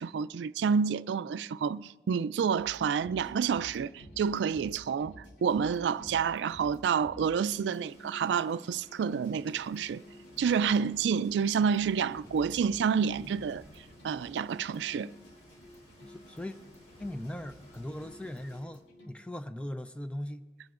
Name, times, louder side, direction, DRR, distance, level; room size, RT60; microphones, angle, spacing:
voice 1, 0.0-10.0 10.4-13.6 14.0-15.1, right 6 dB, 85° right, 0.3 m, -29 dB
sound 1, 2.6-19.1, equal, 85° left, 2.4 m, -54 dB
Rain, 7.4-18.6, equal, 40° left, 4.1 m, -55 dB
voice 2, 16.0-16.6 17.0-20.4, left 1 dB, 5° left, 0.4 m, -39 dB
21.5 x 15.0 x 2.5 m
head